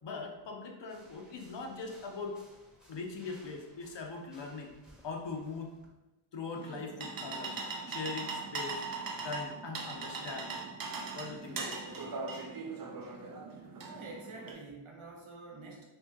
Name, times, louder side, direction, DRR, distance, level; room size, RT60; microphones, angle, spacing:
voice 1, 0.0-2.4 2.9-4.7 5.0-5.7 6.3-7.6 7.9-8.8 9.2-10.6 11.0-12.1, left 4 dB, 60° left, 2 dB, 0.7 m, -41 dB
sound 1, 0.9-5.9, equal, ahead, 0.8 m, -61 dB
sound 2, 6.5-14.5, right 4 dB, 45° right, 0.5 m, -40 dB
voice 2, 13.9-15.9, right 3 dB, 75° right, -1 dB, 0.9 m, -47 dB
2.8 x 2.7 x 3.6 m, 1.0 s
cardioid pair, 60°, 50 cm